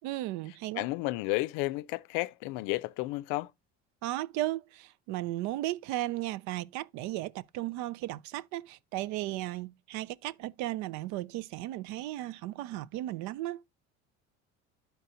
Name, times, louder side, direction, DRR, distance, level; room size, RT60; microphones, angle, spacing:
voice 1, 0.0-0.8 4.0-13.6, right 16 dB, 70° right, 0.5 m, -35 dB
voice 2, 0.7-3.5, left 21 dB, 80° left, 0.5 m, -32 dB
12.5 x 4.5 x 2.6 m
cardioid pair, 145°, 30 cm